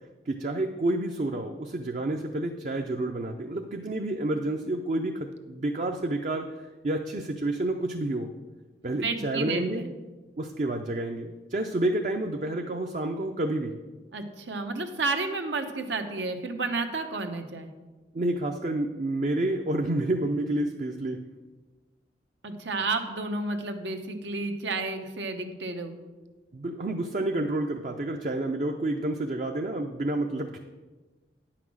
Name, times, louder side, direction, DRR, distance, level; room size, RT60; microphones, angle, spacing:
voice 1, 0.3-6.5 6.8-8.3 8.8-9.9 10.4-13.8 18.1-21.2 26.5-30.6, right 1 dB, 45° right, 4 dB, 0.5 m, -29 dB
voice 2, 8.9-9.9 14.1-17.7 22.4-26.0, right 3 dB, 85° right, 6 dB, 1.0 m, -31 dB
9.5 x 5.8 x 6.2 m, 1.3 s
head